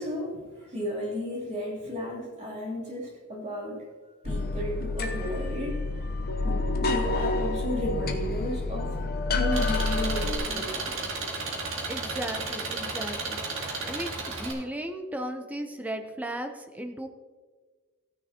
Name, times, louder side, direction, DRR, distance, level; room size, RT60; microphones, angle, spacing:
voice 1, 0.0-3.8 4.2-5.8 6.4-8.9 9.3-12.0 12.5-12.6, left 1 dB, 30° right, -4 dB, 3.2 m, -34 dB
sound 1, 4.2-10.4, left 2 dB, 45° left, 0.8 m, -28 dB
Engine, 9.5-14.5, right 3 dB, 60° right, 2.0 m, -33 dB
voice 2, 11.9-13.4 13.8-17.1, right 1 dB, 5° right, 6 dB, 0.7 m, -35 dB
15.0 x 9.7 x 2.9 m, 1.4 s
head